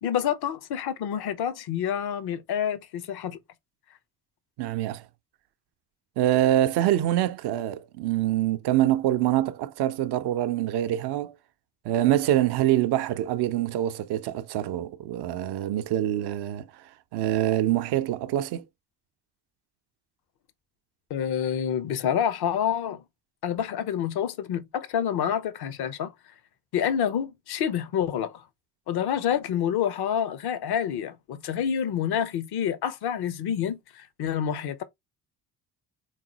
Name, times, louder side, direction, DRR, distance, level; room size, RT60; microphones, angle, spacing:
voice 1, 0.0-3.4 21.1-23.0 23.4-26.1 26.7-28.4 28.9-34.8, left 9 dB, 55° left, 0.7 m, -28 dB
voice 2, 4.6-5.0 6.2-11.3 11.8-18.6, right 13 dB, 60° right, 0.6 m, -25 dB
3.7 x 3.1 x 2.8 m
hypercardioid pair, 45°, 46 cm